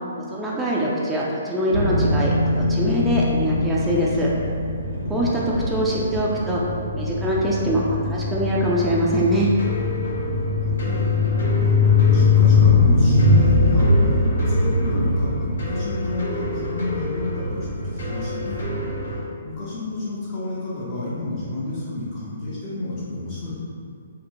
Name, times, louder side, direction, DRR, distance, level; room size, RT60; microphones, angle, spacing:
voice 1, 0.3-4.3 5.1-5.3 5.7-6.6 6.9-9.5, equal, 10° right, -6 dB, 0.4 m, -23 dB
sound 1, 1.7-19.2, left 3 dB, 80° right, 0.8 m, -21 dB
voice 2, 5.0-5.6 10.3-11.3 11.6-18.7 19.4-23.6, left 2 dB, 40° left, -9 dB, 0.6 m, -30 dB
sound 2, 9.6-19.2, left 2 dB, 80° left, 1.1 m, -33 dB
2.8 x 2.7 x 2.5 m, 2.3 s
hypercardioid pair, 140°, 0 cm